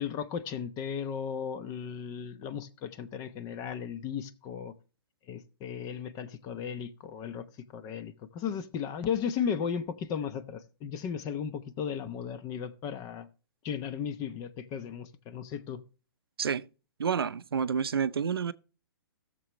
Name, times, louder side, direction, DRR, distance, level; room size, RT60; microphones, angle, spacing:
voice 1, 0.0-4.7 5.3-7.5 7.7-13.3 13.6-15.8, left 7 dB, 30° left, 1.0 m, -35 dB
voice 2, 17.0-18.5, right 7 dB, 85° right, 0.6 m, -29 dB
16.5 x 7.0 x 3.0 m
hypercardioid pair, 130°, 12 cm